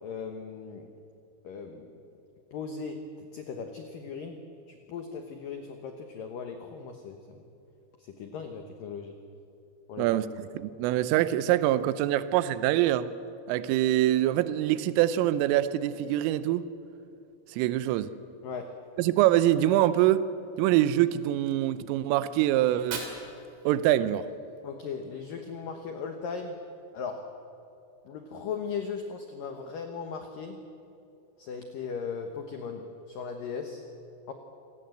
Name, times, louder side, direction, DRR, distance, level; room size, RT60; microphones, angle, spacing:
voice 1, 0.0-0.9 1.4-1.9 2.5-4.4 4.7-7.4 8.0-9.1 9.9-10.1 18.4-18.8 24.6-26.6 26.9-27.3 28.1-30.6 31.4-33.8 34.3-34.4, left 5 dB, 80° left, 2.0 m, -38 dB
voice 2, 10.0-13.1 13.5-16.6 17.5-18.1 19.0-20.3 20.6-23.0 23.7-24.3, right 13 dB, 85° right, 3.4 m, -24 dB
Fire, 22.6-24.6, right 5 dB, 55° right, 4.6 m, -42 dB
27.0 x 18.5 x 7.9 m
omnidirectional pair, 5.9 m